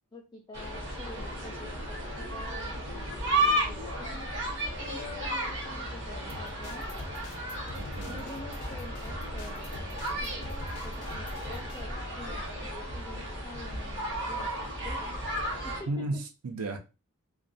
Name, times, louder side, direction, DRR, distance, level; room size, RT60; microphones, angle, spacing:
voice 1, 0.1-7.1 8.0-15.3 15.6-16.2, left 2 dB, 20° left, 0.3 m, -47 dB
sound 1, 0.5-15.8, right 1 dB, 55° right, 1.0 m, -34 dB
sound 2, 6.3-11.8, left 2 dB, 85° left, 0.4 m, -45 dB
voice 2, 7.8-8.2 15.9-16.8, right 2 dB, 90° right, 0.5 m, -34 dB
2.3 x 2.2 x 2.5 m
head